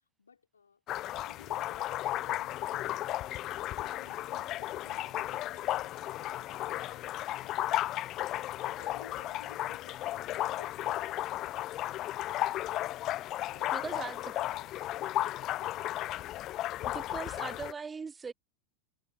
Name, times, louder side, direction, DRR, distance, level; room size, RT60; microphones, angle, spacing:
voice 1, 0.2-0.8 1.2-2.9 3.7-7.5 8.6-12.0 13.4-14.7 15.2-15.9, left 5 dB, 80° left, 4.6 m, -57 dB
sound 1, 0.9-17.7, left 14 dB, 40° left, 0.5 m, -34 dB
sound 2, 4.0-13.4 13.7-13.8, right 8 dB, 75° right, 6.4 m, -69 dB
voice 2, 13.7-14.4 16.8-18.3, right 5 dB, 20° right, 0.3 m, -40 dB
figure-of-eight pair, 85°, 0 cm